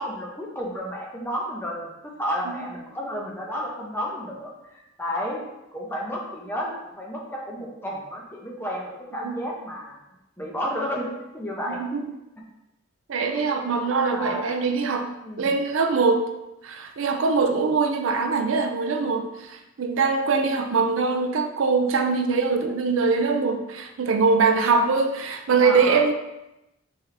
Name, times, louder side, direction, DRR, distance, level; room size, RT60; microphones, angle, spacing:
voice 1, 0.0-5.4 5.7-10.0 10.4-12.0 13.2-14.5 15.2-15.6 25.6-26.1, equal, 10° left, -3 dB, 0.9 m, -32 dB
voice 2, 11.7-12.0 13.1-15.1 15.4-16.3 16.6-26.1, right 4 dB, 80° right, 6 dB, 0.5 m, -22 dB
4.2 x 3.5 x 3.3 m, 0.91 s
head